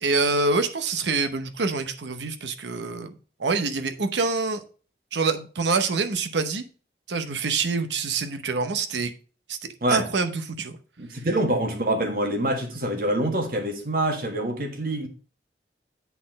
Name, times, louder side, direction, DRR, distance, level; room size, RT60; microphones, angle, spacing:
voice 1, 0.0-3.1 3.4-4.6 5.1-6.6 7.1-9.1 9.5-9.6 9.9-10.8, right 4 dB, 85° right, 0.9 m, -26 dB
voice 2, 11.0-15.1, right 1 dB, 55° right, 1.5 m, -25 dB
8.2 x 4.3 x 5.2 m
head